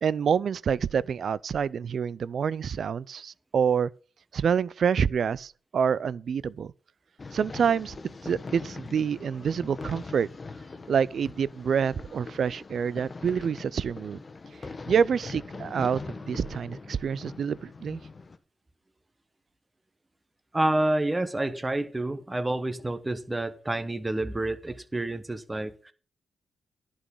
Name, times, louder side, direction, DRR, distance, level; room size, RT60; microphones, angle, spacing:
voice 1, 0.0-3.9 4.3-6.7 7.3-7.9 8.2-10.3 10.9-14.2 14.9-18.0, right 7 dB, 65° right, 0.4 m, -27 dB
sound 1, 7.2-18.4, left 3 dB, 40° left, 1.2 m, -42 dB
voice 2, 20.5-25.9, right 1 dB, 20° right, 1.3 m, -28 dB
11.0 x 6.3 x 5.5 m
cardioid pair, 55°, 0 cm